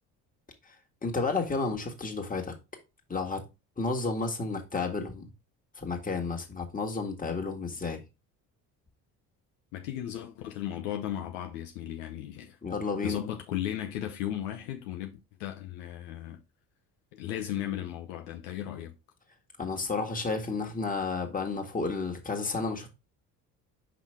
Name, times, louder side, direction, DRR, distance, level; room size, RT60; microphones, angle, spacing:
voice 1, 1.0-2.5 3.1-3.4 3.8-5.3 5.8-8.0 12.6-13.2 19.6-22.9, left 4 dB, 15° left, 1.8 m, -31 dB
voice 2, 9.7-12.6 13.0-16.4 17.1-18.9, left 11 dB, 65° left, 0.9 m, -36 dB
5.6 x 5.3 x 3.4 m
figure-of-eight pair, 55°, 47 cm